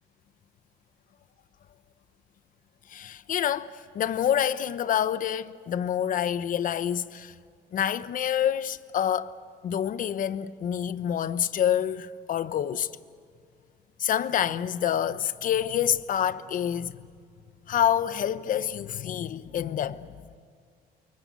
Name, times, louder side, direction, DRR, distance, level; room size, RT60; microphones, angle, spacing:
voice 1, 2.9-3.7 3.9-7.3 7.7-9.3 9.6-12.9 14.0-17.0 17.7-20.1, left 10 dB, 50° left, 1.0 m, -27 dB
29.5 x 23.0 x 8.3 m
cardioid pair, 110°, 17 cm